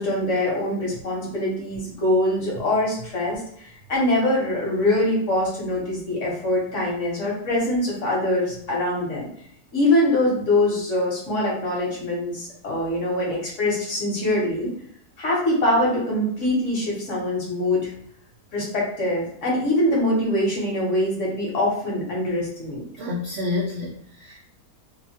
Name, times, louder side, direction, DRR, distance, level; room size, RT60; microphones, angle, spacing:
voice 1, 0.0-9.3 9.7-14.7 15.2-17.9 18.5-22.9, left 1 dB, 55° left, -4 dB, 1.1 m, -23 dB
voice 2, 23.0-24.4, left 3 dB, 80° right, -3 dB, 0.5 m, -29 dB
2.8 x 2.1 x 2.7 m, 0.66 s
omnidirectional pair, 1.7 m